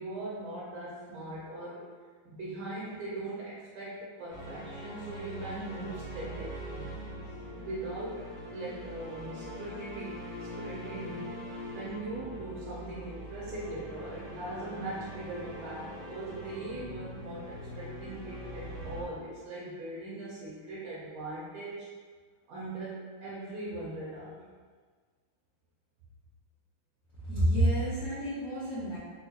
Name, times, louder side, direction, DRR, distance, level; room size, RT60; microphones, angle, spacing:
voice 1, 0.0-1.9 2.2-6.9 7.6-10.2 10.6-11.3 11.7-21.9 22.5-24.4, right 2 dB, 85° right, -6 dB, 1.5 m, -40 dB
sound 1, 4.3-19.0, equal, 30° left, 0.7 m, -42 dB
voice 2, 27.2-29.0, right 1 dB, 55° left, -13 dB, 1.1 m, -28 dB
3.9 x 2.8 x 2.3 m, 1.5 s
omnidirectional pair, 2.2 m